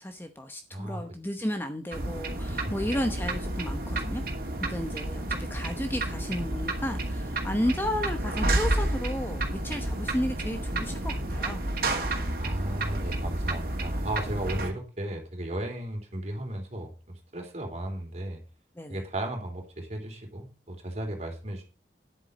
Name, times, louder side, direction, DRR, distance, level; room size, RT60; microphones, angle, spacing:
voice 1, 0.0-4.2 4.7-11.6 18.8-19.0, left 1 dB, 10° left, 7 dB, 0.8 m, -33 dB
voice 2, 0.7-1.0 2.5-2.7 12.4-18.4 18.9-21.6, right 1 dB, 40° right, 2 dB, 3.6 m, -35 dB
sound 1, 1.9-14.7, right 1 dB, 55° right, 2.6 m, -30 dB
10.0 x 8.4 x 5.3 m, 0.33 s
head